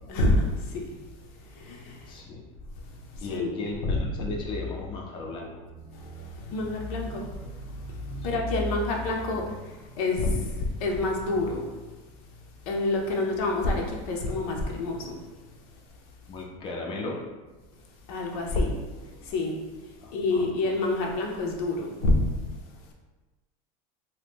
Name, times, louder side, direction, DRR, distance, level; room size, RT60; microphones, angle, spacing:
voice 1, 0.0-1.0 1.4-2.1 2.8-4.3 5.8-11.9 12.7-15.1 18.1-19.6 20.1-22.4, left 2 dB, 80° left, 0 dB, 0.6 m, -28 dB
voice 2, 2.1-2.4 3.2-5.6 8.2-8.4 16.3-17.2 20.0-20.6, left 2 dB, 25° left, -1 dB, 0.5 m, -36 dB
2.8 x 2.2 x 3.4 m, 1.2 s
supercardioid pair, 145°, 18 cm